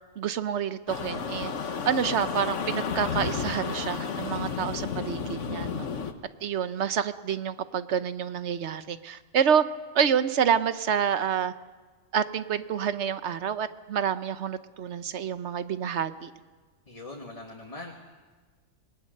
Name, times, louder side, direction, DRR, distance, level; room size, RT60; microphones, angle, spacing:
voice 1, 0.2-1.5 1.8-5.8 6.4-9.6 9.9-11.5 12.1-16.3, right 8 dB, 65° right, 12 dB, 1.1 m, -28 dB
sound 1, 0.9-6.1, left 6 dB, 70° left, 1.5 m, -32 dB
voice 2, 16.9-17.9, left 2 dB, 25° left, 0 dB, 1.7 m, -41 dB
27.0 x 19.5 x 6.5 m, 1.4 s
omnidirectional pair, 1.3 m